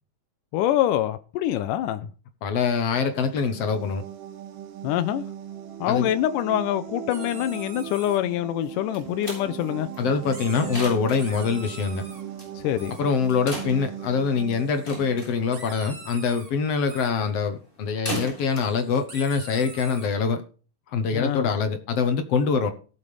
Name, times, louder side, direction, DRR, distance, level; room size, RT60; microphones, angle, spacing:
voice 1, 0.5-2.0 4.8-5.2 5.8-9.9 12.6-12.9 21.1-21.5, left 12 dB, 85° left, 10 dB, 2.2 m, -25 dB
voice 2, 2.4-4.0 5.9-6.1 10.0-12.0 13.0-20.4 20.9-22.7, left 5 dB, 60° left, 8 dB, 1.8 m, -24 dB
sound 1, 2.8-16.4, right 10 dB, 85° right, 2.6 m, -39 dB
sound 2, 7.1-8.2 10.2-10.8 11.1-12.2 12.8-13.0 14.6-15.1 15.5-16.5 16.9-17.1 18.4-20.1, right 3 dB, 30° right, 1.6 m, -44 dB
sound 3, 8.6-20.1, equal, 15° left, 6.7 m, -40 dB
18.0 x 7.3 x 3.3 m, 0.37 s
omnidirectional pair, 3.7 m